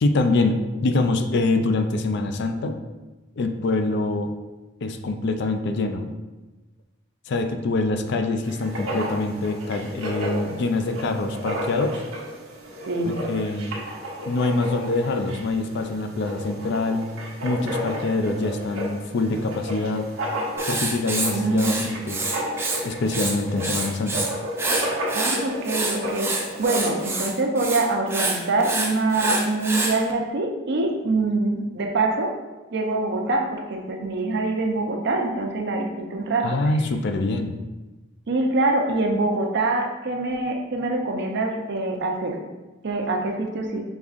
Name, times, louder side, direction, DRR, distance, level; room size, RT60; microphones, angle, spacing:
voice 1, 0.0-2.8 3.4-4.3 4.8-6.1 7.3-12.0 13.0-13.7 14.3-17.1 17.4-20.1 20.7-22.2 22.8-24.3 36.4-37.6, left 2 dB, 60° left, 6 dB, 0.4 m, -25 dB
Writing, 8.4-27.2, equal, 90° right, 1.0 m, -32 dB
voice 2, 12.9-13.2 21.3-21.8 25.1-32.4 32.7-36.6 38.3-42.4 42.8-43.8, right 2 dB, 60° right, 2 dB, 0.6 m, -24 dB
Writing 2, 20.6-22.8 23.1-24.3 24.6-30.0, right 2 dB, 10° right, 0.4 m, -27 dB
5.3 x 3.5 x 2.4 m, 1.2 s
head